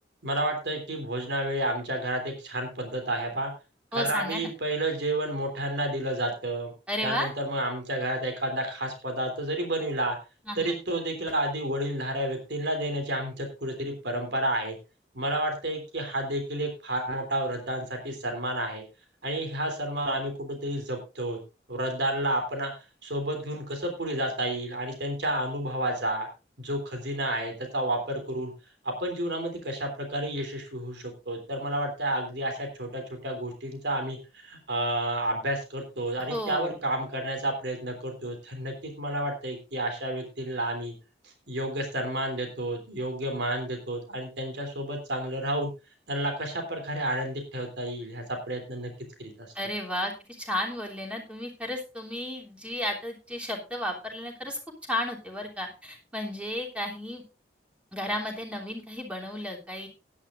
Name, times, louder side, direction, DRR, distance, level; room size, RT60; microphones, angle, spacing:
voice 1, 0.2-3.5 3.9-6.7 7.0-10.2 10.5-14.8 15.1-18.8 19.2-21.4 21.7-22.7 23.0-26.3 26.6-28.5 28.8-40.9 41.2-45.7 46.1-48.9 49.2-49.5, right 1 dB, 80° right, 4 dB, 3.3 m, -30 dB
voice 2, 3.9-4.5 6.9-7.3 10.5-10.8 36.3-36.7 49.5-50.1 50.4-54.6 54.9-57.2 57.9-59.9, left 1 dB, 5° right, 0 dB, 3.2 m, -33 dB
16.5 x 11.0 x 2.6 m, 0.29 s
head